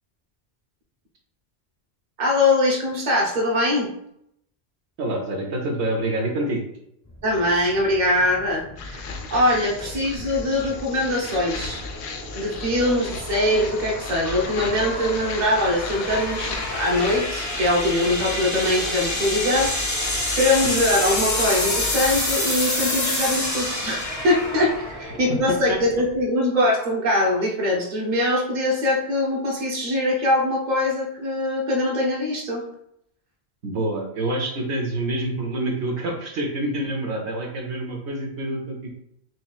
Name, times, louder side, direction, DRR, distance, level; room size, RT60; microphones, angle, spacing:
voice 1, 2.2-3.9 7.2-11.8 12.3-32.6, left 1 dB, 45° right, -2 dB, 1.0 m, -22 dB
voice 2, 5.0-6.6 9.8-9.9 25.3-25.8 33.6-38.9, right 1 dB, 90° right, 1 dB, 1.1 m, -27 dB
sound 1, 7.1-26.2, left 1 dB, 20° left, 0.5 m, -29 dB
sound 2, 8.8-22.4, left 4 dB, 80° left, 0.9 m, -35 dB
4.3 x 3.0 x 2.3 m, 0.75 s
omnidirectional pair, 1.1 m